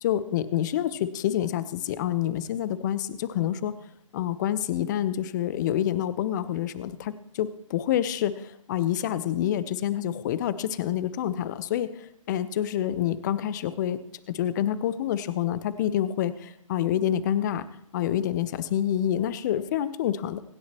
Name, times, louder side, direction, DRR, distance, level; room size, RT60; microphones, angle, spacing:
voice 1, 0.0-3.8 4.1-14.0 14.3-17.7 17.9-20.4, left 11 dB, 35° left, 15 dB, 0.9 m, -27 dB
26.5 x 10.5 x 3.0 m, 0.79 s
figure-of-eight pair, 135°, 17 cm